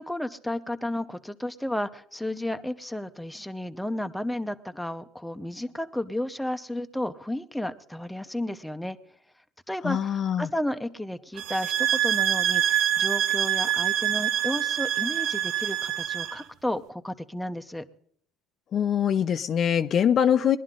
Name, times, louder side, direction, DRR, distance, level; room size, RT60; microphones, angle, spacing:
voice 1, 0.0-9.0 9.7-17.8, left 1 dB, 5° left, 8 dB, 0.7 m, -32 dB
voice 2, 9.8-10.5 18.7-20.6, left 8 dB, 45° left, 10 dB, 0.6 m, -23 dB
sound 1, 11.4-16.4, right 11 dB, 60° right, 0.5 m, -25 dB
20.5 x 11.0 x 3.8 m, 0.62 s
supercardioid pair, 105°, 0 cm